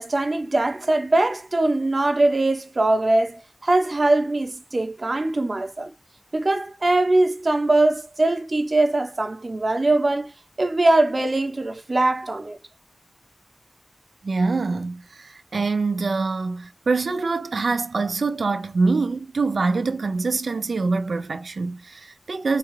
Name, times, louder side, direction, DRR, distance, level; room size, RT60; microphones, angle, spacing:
voice 1, 0.0-5.9 6.3-10.3 10.6-12.6, right 2 dB, 45° right, 0.8 m, -21 dB
voice 2, 14.2-22.6, right 3 dB, 85° right, 0.4 m, -24 dB
4.5 x 2.4 x 3.1 m
wide cardioid pair, 80°, 0 cm